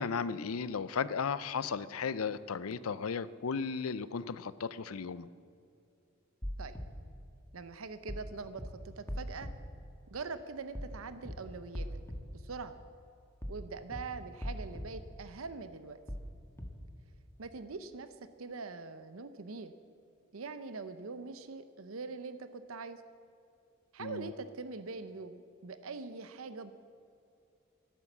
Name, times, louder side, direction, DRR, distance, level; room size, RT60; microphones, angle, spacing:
voice 1, 0.0-5.3 24.0-24.3, left 5 dB, 90° left, 17 dB, 0.6 m, -35 dB
sound 1, 6.4-6.8 8.1-8.3 8.6-8.7 9.1-9.5 10.7-10.9 11.2-11.3 11.7-12.2 13.4-13.6 13.9-14.0 14.4-14.8 16.1-16.3 16.6-16.7, equal, 10° left, 1.4 m, -39 dB
voice 2, 7.5-9.5 10.1-12.0 12.3-12.8 13.5-16.0 17.4-19.7 20.3-23.0 23.9-26.7, right 4 dB, 75° right, 11 dB, 0.7 m, -43 dB
13.5 x 12.0 x 7.3 m, 2.5 s
head